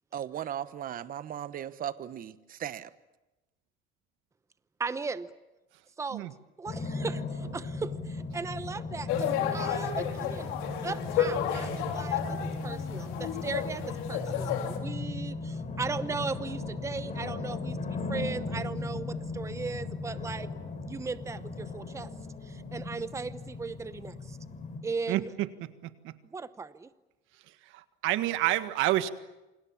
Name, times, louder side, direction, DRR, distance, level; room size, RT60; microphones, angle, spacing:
voice 1, 0.1-2.9, right 10 dB, 45° right, 1.2 m, -37 dB
voice 2, 4.8-5.3 6.0-6.3 6.6-10.5 10.8-20.5 20.8-22.1 22.4-24.4 24.8-25.3 26.3-26.9, right 4 dB, 15° right, 0.9 m, -37 dB
sound 1, 6.7-24.8, left 3 dB, 35° left, 5.3 m, -37 dB
sound 2, 9.1-14.8, left 9 dB, 85° left, 4.3 m, -32 dB
voice 3, 25.1-26.1 27.7-29.1, right 15 dB, 80° right, 1.7 m, -29 dB
28.5 x 25.5 x 7.4 m
cardioid pair, 135°, 20 cm